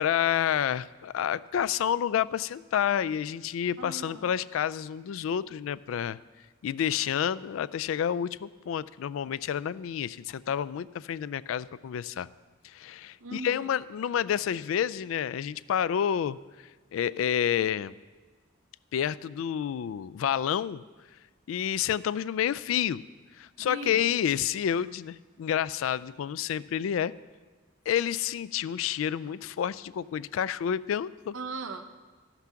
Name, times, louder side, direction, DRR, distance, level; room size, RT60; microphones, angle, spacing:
voice 1, 0.0-6.2 6.6-12.3 12.6-16.4 16.9-17.9 18.9-20.8 21.5-23.0 23.4-27.1 27.9-31.3, left 9 dB, 85° left, 18 dB, 0.3 m, -29 dB
voice 2, 3.8-4.3 13.2-13.7 23.7-24.1 31.3-32.0, right 3 dB, 75° right, 8 dB, 0.7 m, -39 dB
13.5 x 5.9 x 5.7 m, 1.4 s
head